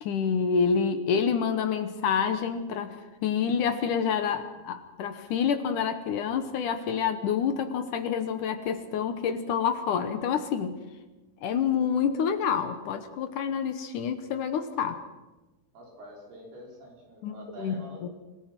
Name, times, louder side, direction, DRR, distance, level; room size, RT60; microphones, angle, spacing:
voice 1, 0.0-10.8 11.4-15.0 17.2-17.7 18.0-18.1, left 7 dB, 70° left, 9 dB, 2.1 m, -28 dB
voice 2, 15.7-18.1, equal, 70° right, 0 dB, 6.2 m, -46 dB
26.0 x 17.5 x 6.0 m, 1.1 s
omnidirectional pair, 4.8 m